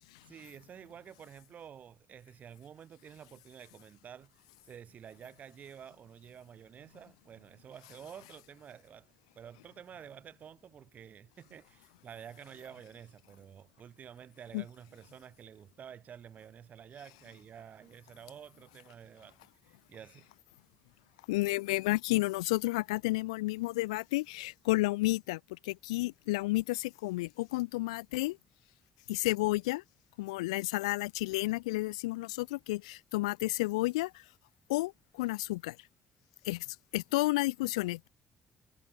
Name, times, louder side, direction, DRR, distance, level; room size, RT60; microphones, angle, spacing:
voice 1, 0.3-19.4 19.6-20.3, right 8 dB, 50° right, 5.8 m, -50 dB
voice 2, 21.3-28.4 29.1-29.8 30.2-34.2 34.7-35.8 36.4-38.1, left 21 dB, 80° left, 0.6 m, -31 dB
figure-of-eight pair, 45°, 3 cm